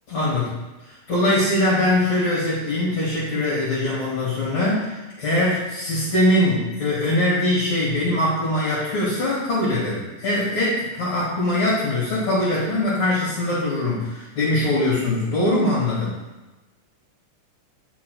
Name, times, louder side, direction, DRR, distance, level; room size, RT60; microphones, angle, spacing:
voice 1, 0.1-0.6 0.9-16.1, left 1 dB, 55° left, -10 dB, 3.1 m, -22 dB
8.6 x 5.7 x 2.4 m, 1.1 s
omnidirectional pair, 3.7 m